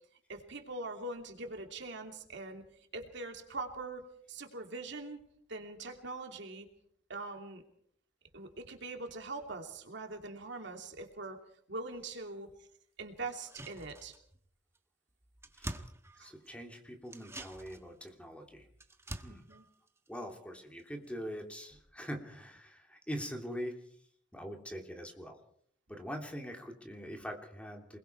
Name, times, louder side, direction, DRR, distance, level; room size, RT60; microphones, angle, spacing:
voice 1, 0.3-2.6 2.9-5.2 5.5-6.7 7.1-7.6 8.3-11.4 11.7-12.5 13.0-14.1 16.2-16.3 19.3-19.6, right 3 dB, 65° right, 4 dB, 2.8 m, -42 dB
sound 1, 13.3-14.5 14.7-14.8 15.1-16.6 17.1-20.8 21.1-21.2, right 1 dB, 15° right, 1.3 m, -47 dB
voice 2, 16.2-18.6 19.2-19.4 20.1-23.8 24.3-25.4 25.9-28.0, equal, 5° left, 3 dB, 3.1 m, -43 dB
28.0 x 21.0 x 4.7 m, 0.64 s
head